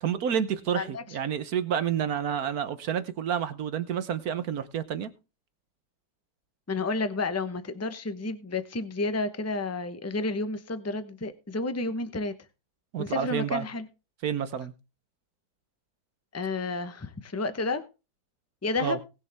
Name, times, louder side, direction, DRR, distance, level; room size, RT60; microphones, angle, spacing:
voice 1, 0.0-5.1 12.9-13.6 14.2-14.7 18.8-19.0, right 8 dB, 60° right, 1.2 m, -29 dB
voice 2, 6.7-12.3 13.0-13.8 16.3-17.8 18.6-19.0, left 3 dB, 15° left, 0.5 m, -31 dB
19.5 x 6.8 x 3.5 m
omnidirectional pair, 2.1 m